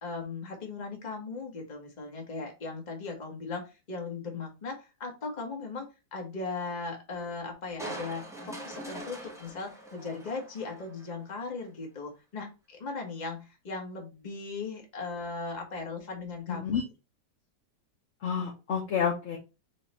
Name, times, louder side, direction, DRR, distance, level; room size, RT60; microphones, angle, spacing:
voice 1, 0.0-16.8, left 4 dB, 30° left, 2 dB, 1.2 m, -38 dB
Crushing, 7.8-11.2 11.6-11.7, right 1 dB, 5° right, 0.7 m, -43 dB
voice 2, 16.5-16.8 18.2-19.4, left 7 dB, 55° left, 0 dB, 0.9 m, -29 dB
4.9 x 2.4 x 4.1 m, 0.29 s
omnidirectional pair, 1.9 m